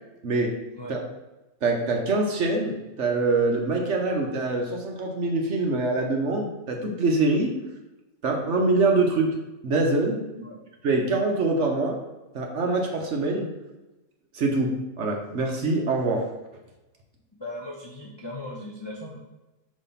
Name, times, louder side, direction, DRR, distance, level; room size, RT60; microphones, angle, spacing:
voice 1, 0.2-0.6 0.9-1.0 1.6-7.5 8.2-9.3 9.6-10.2 10.8-12.0 12.3-13.5 14.3-16.3, right 3 dB, 55° right, 1 dB, 1.0 m, -24 dB
voice 2, 17.3-19.2, left 1 dB, 40° left, -2 dB, 0.3 m, -38 dB
5.2 x 3.3 x 5.5 m, 1.0 s
omnidirectional pair, 1.7 m